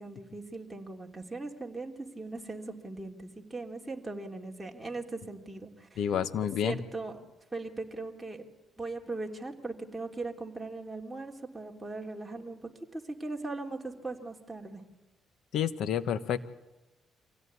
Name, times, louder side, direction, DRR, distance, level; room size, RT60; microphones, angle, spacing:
voice 1, 0.0-6.0 6.6-7.3 7.5-8.4 8.8-14.8, right 3 dB, 10° right, 0 dB, 3.1 m, -39 dB
voice 2, 6.0-6.8 15.5-16.4, left 9 dB, 75° left, 14 dB, 1.1 m, -29 dB
24.5 x 16.5 x 9.6 m, 1.0 s
cardioid pair, 90°, 0 cm